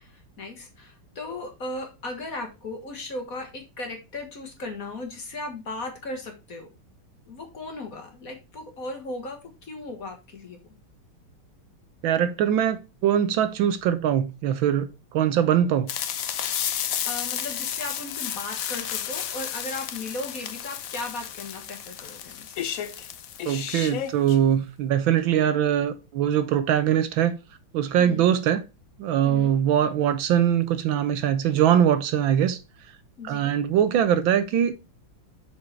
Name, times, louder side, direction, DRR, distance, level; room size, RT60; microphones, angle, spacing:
voice 1, 0.0-6.7 7.2-10.7 17.0-22.5 28.0-28.3 29.2-29.6 33.2-33.5, left 2 dB, 45° left, 1.5 m, -37 dB
voice 2, 12.0-15.9 23.5-27.4 27.7-28.6 29.0-32.6 33.2-34.7, right 9 dB, 70° right, 1.3 m, -22 dB
sound 1, 15.9-24.4, left 9 dB, 80° left, 0.7 m, -32 dB
7.4 x 4.7 x 4.4 m
omnidirectional pair, 2.4 m